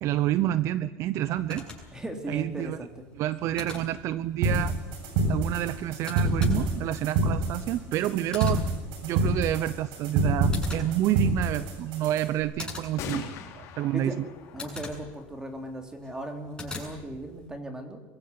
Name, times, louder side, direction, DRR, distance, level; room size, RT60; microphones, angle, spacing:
voice 1, 0.0-1.6 2.3-2.8 3.2-4.7 5.3-8.6 9.0-13.2 13.5-14.1, right 13 dB, 55° right, 15 dB, 0.8 m, -28 dB
sound 1, 1.2-17.5, left 3 dB, 15° left, 7.8 m, -45 dB
voice 2, 1.9-3.0 13.9-14.2 14.5-18.0, right 1 dB, 10° right, 5 dB, 3.4 m, -37 dB
sound 2, 4.4-12.4, right 2 dB, 70° right, 7.3 m, -27 dB
sound 3, 9.3-9.4 9.6-9.7 10.0-10.5 13.0-16.4, left 7 dB, 50° left, 4.3 m, -43 dB
22.5 x 15.5 x 9.5 m, 1.1 s
supercardioid pair, 115°, 6 cm